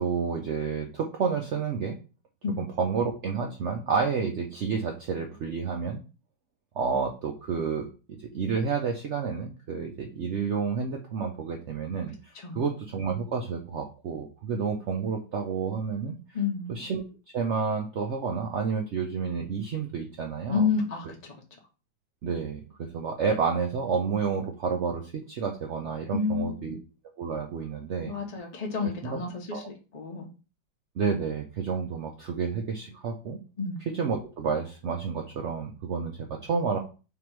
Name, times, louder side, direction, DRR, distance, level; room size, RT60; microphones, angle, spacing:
voice 1, 0.0-2.0 2.6-6.0 6.8-16.2 16.7-17.0 17.3-20.7 22.2-26.8 27.2-28.1 28.8-29.2 29.5-29.7 31.0-33.4 33.9-36.8, right 5 dB, 90° right, 3 dB, 0.6 m, -30 dB
voice 2, 12.4-12.7 16.3-16.8 20.5-21.3 26.1-26.8 28.0-29.6 29.9-30.3 33.6-33.8, left 5 dB, 60° left, 1 dB, 0.4 m, -30 dB
3.5 x 2.9 x 4.5 m, 0.34 s
omnidirectional pair, 1.9 m